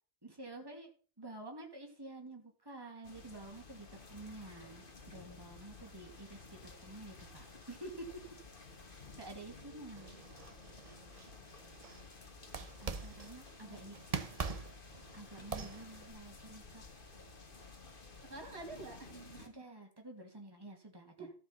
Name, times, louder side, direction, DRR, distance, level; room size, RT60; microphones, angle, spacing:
voice 1, 0.2-0.9 1.2-8.2 8.9-10.1 12.8-14.0 15.1-16.8 19.4-21.3, right 2 dB, 20° right, 2 dB, 2.3 m, -50 dB
sound 1, 3.0-19.5, left 3 dB, 55° left, 1.8 m, -54 dB
sound 2, 10.0-12.1 12.5-13.5 13.9-16.1, right 5 dB, 35° right, 0.9 m, -43 dB
voice 2, 18.2-19.6 21.2-21.3, right 2 dB, 90° right, 2 dB, 2.7 m, -49 dB
14.0 x 5.1 x 5.6 m, 0.39 s
omnidirectional pair, 1.1 m